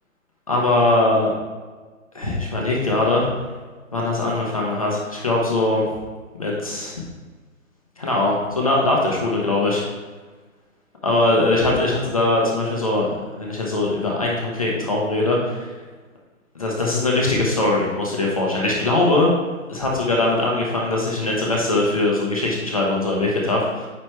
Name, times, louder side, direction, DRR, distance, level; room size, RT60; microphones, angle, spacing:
voice 1, 0.5-1.3 2.1-3.3 3.9-5.8 6.4-7.0 8.0-9.8 11.0-13.1 13.4-15.7 16.5-19.3 19.7-23.9, left 2 dB, 25° left, -3 dB, 0.7 m, -21 dB
9.1 x 3.1 x 4.4 m, 1.4 s
hypercardioid pair, 165°, 42 cm